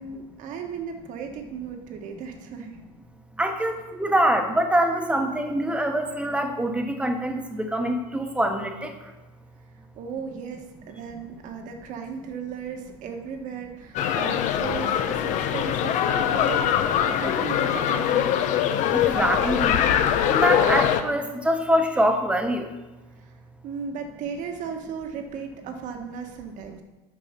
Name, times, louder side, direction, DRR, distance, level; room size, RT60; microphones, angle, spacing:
voice 1, 0.0-2.8 10.0-18.3 23.2-23.3 23.6-26.8, right 6 dB, 50° right, 5 dB, 1.5 m, -36 dB
voice 2, 3.4-8.9 18.9-19.8 20.3-22.7, right 1 dB, 5° right, 5 dB, 1.2 m, -24 dB
Families Playing At The Beach With Children, 13.9-21.0, left 9 dB, 50° left, 0.8 m, -22 dB
9.8 x 5.5 x 5.9 m, 1.1 s
supercardioid pair, 115°, 16 cm